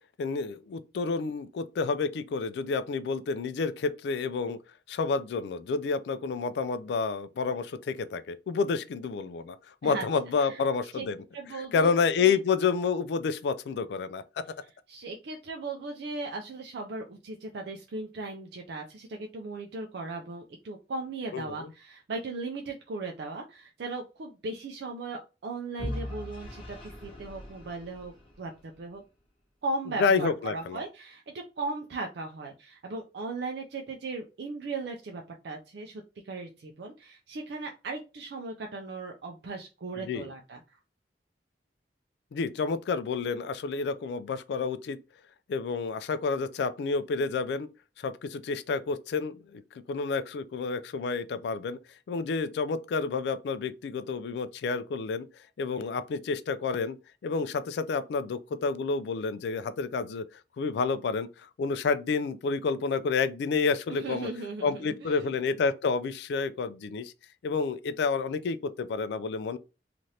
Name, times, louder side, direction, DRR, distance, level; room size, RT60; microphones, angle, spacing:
voice 1, 0.2-4.6 4.9-9.6 9.8-11.2 11.7-14.4 21.3-21.7 30.0-30.8 40.0-40.3 42.3-45.0 45.5-47.7 48.0-49.6 49.9-51.8 52.1-55.3 55.6-57.0 57.2-60.2 60.6-64.3 64.6-67.1 67.4-69.6, left 4 dB, 70° left, 0.3 m, -29 dB
voice 2, 11.3-11.9 12.2-12.4 14.9-29.0 29.6-40.6 63.9-65.3, right 3 dB, 65° right, 0.4 m, -37 dB
Vehicle / Engine, 25.8-28.8, left 1 dB, 30° left, 0.9 m, -40 dB
3.2 x 2.5 x 2.7 m
head